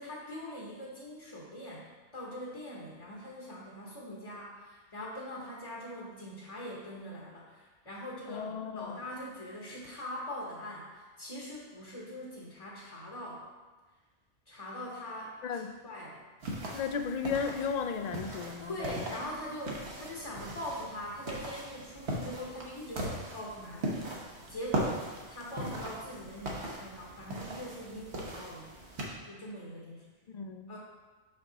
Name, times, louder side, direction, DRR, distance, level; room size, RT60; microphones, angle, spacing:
voice 1, 0.0-1.8 2.1-13.4 14.5-16.2 18.6-28.7 29.3-30.0 30.7-30.8, equal, 30° left, -4 dB, 1.0 m, -42 dB
voice 2, 8.3-9.0 15.4-15.7 16.7-19.2 30.3-30.7, left 6 dB, 60° left, 6 dB, 0.4 m, -35 dB
sound 1, 16.4-29.1, right 1 dB, 70° right, 1.3 m, -39 dB
5.9 x 5.4 x 3.9 m, 1.3 s
omnidirectional pair, 1.2 m